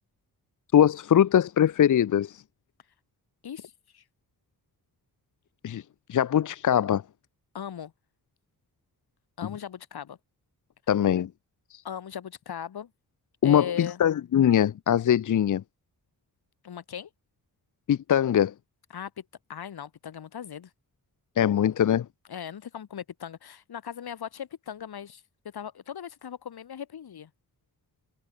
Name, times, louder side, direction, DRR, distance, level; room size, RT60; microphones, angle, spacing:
voice 1, 0.7-2.4 5.6-5.8 6.1-7.0 10.9-11.3 11.7-11.8 13.4-15.6 17.9-18.5 21.4-22.1, left 10 dB, 55° left, 0.7 m, -22 dB
voice 2, 3.4-4.0 7.5-7.9 9.4-10.2 11.8-12.9 13.4-14.0 16.6-17.1 18.9-19.2 19.5-20.7 22.3-25.2 25.5-27.3, left 8 dB, 90° left, 4.6 m, -38 dB
wide cardioid pair, 130°, 37 cm